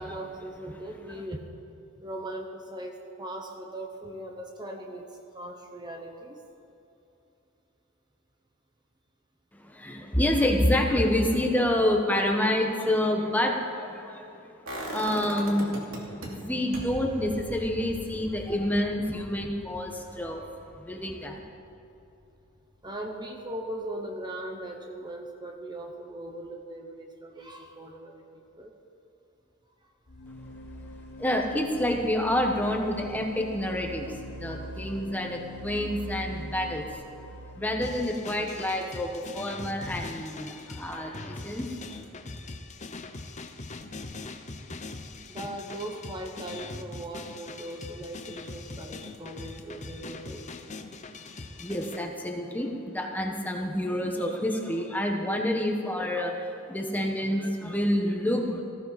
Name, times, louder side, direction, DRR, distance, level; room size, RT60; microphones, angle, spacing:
voice 1, 0.0-1.4 2.0-6.4 22.8-28.7 29.8-29.9 44.7-44.8 45.3-50.5, right 1 dB, 20° right, 3 dB, 1.0 m, -39 dB
voice 2, 9.6-14.5 14.8-21.4 31.2-37.0 37.6-41.7 51.6-58.6, left 1 dB, 10° left, 2 dB, 1.2 m, -28 dB
sound 1, 14.7-16.3 16.7-22.6 22.9-23.0, right 1 dB, 65° right, 2.7 m, -41 dB
sound 2, 30.1-39.9, left 1 dB, 50° left, 1.5 m, -43 dB
sound 3, 37.8-52.0, left 3 dB, 35° left, 0.8 m, -41 dB
19.5 x 15.0 x 4.2 m, 2.9 s
head